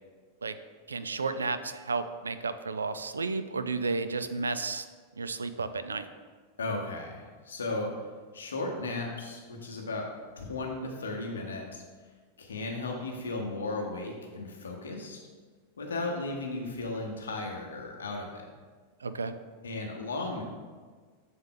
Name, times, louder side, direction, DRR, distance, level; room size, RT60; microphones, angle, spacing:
voice 1, 0.9-4.9 5.2-6.1 19.0-19.3, right 4 dB, 75° right, 11 dB, 0.3 m, -32 dB
voice 2, 6.6-8.1 8.3-11.8 12.4-15.2 15.8-18.5 19.6-20.4, left 2 dB, 70° left, 1 dB, 0.9 m, -35 dB
6.9 x 3.8 x 3.8 m, 1.5 s
figure-of-eight pair, 90°, 0 cm